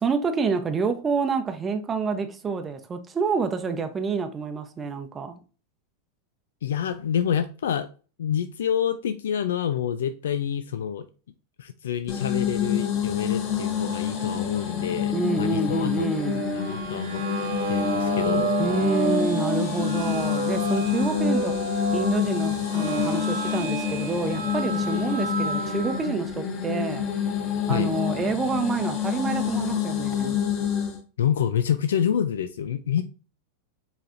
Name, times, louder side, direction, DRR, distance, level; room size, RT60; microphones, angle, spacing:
voice 1, 0.0-5.4 15.1-16.4 18.6-21.5 21.9-27.0 27.7-30.4, right 4 dB, 20° right, 0.7 m, -28 dB
voice 2, 6.6-7.9 8.2-11.1 11.6-16.1 16.5-17.2 17.7-18.5 27.7-27.9 31.2-33.0, left 9 dB, 85° left, 0.3 m, -27 dB
sound 1, 12.1-31.0, left 8 dB, 40° left, 1.1 m, -28 dB
sound 2, 15.8-26.1, right 3 dB, 80° right, 1.3 m, -30 dB
4.8 x 3.3 x 2.5 m
hypercardioid pair, 120°, 0 cm